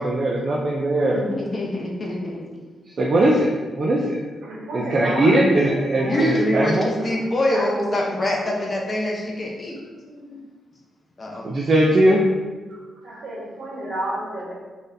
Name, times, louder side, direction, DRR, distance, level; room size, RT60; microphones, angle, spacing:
voice 1, 0.0-1.2 3.0-3.5 3.8-4.2 4.9-6.9 11.4-12.2, right 1 dB, 40° right, -3 dB, 0.4 m, -19 dB
voice 2, 1.1-2.4 5.1-5.6 6.0-9.8 11.2-11.5, left 1 dB, 30° left, -1 dB, 0.6 m, -25 dB
voice 3, 4.3-8.7 10.0-10.3 12.7-12.8 13.0-14.5, right 1 dB, 80° right, -5 dB, 1.1 m, -32 dB
3.9 x 2.6 x 2.6 m, 1.3 s
wide cardioid pair, 135°, 0 cm